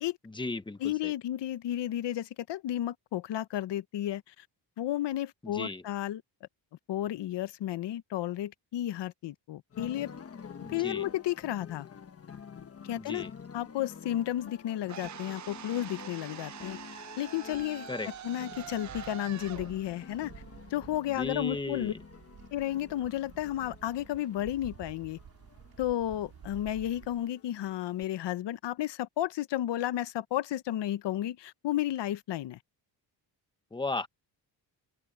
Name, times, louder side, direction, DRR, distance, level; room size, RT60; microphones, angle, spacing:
voice 1, 0.2-1.1 5.4-5.8 10.6-11.1 13.0-13.3 17.9-18.1 21.1-22.0 33.7-34.1, left 3 dB, 10° left, 1.0 m, -35 dB
voice 2, 0.8-4.4 4.8-6.2 6.9-10.1 10.7-11.9 12.8-13.2 13.5-16.8 17.2-17.9 18.2-20.3 20.7-21.9 22.5-25.2 25.8-32.6, left 13 dB, 70° left, 0.9 m, -32 dB
sound 1, 9.7-28.0, left 6 dB, 30° left, 1.2 m, -49 dB
sound 2, 14.9-21.0, right 10 dB, 40° right, 0.6 m, -45 dB
Wind, 17.5-27.3, right 9 dB, 55° right, 2.1 m, -52 dB
open air
wide cardioid pair, 165°, 44 cm